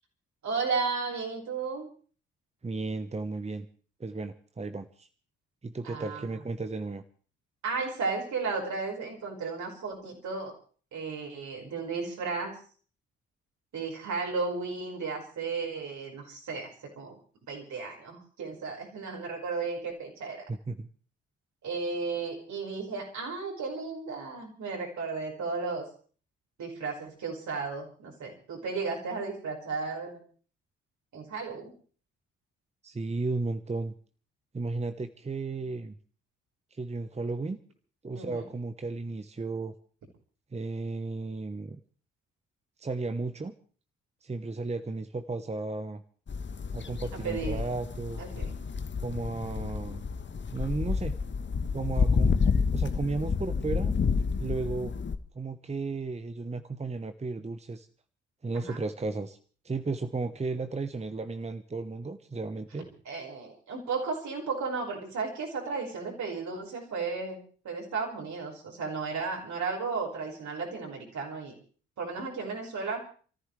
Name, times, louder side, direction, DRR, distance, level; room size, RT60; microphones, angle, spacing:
voice 1, 0.4-1.9 5.8-6.4 7.6-10.5 10.9-12.6 13.7-17.2 17.5-20.4 21.6-25.9 26.6-30.2 31.1-31.7 38.2-38.5 47.1-47.6 48.2-48.6 58.5-58.8 63.1-71.5 72.0-73.0, right 4 dB, 60° right, 0 dB, 5.3 m, -34 dB
voice 2, 2.6-3.7 4.0-5.1 5.6-7.0 20.5-20.9 32.8-33.9 34.5-36.0 36.7-37.6 38.0-39.7 40.5-41.8 42.8-43.5 44.2-46.0 46.7-48.2 49.0-50.1 50.5-51.2 51.7-52.4 52.7-53.9 54.4-55.0 55.3-57.9 58.4-59.4 59.6-62.9, right 3 dB, 20° right, 10 dB, 1.1 m, -34 dB
sound 1, 46.3-55.2, left 5 dB, 35° left, 1.3 m, -29 dB
28.0 x 14.5 x 3.3 m, 0.42 s
figure-of-eight pair, 40°, 33 cm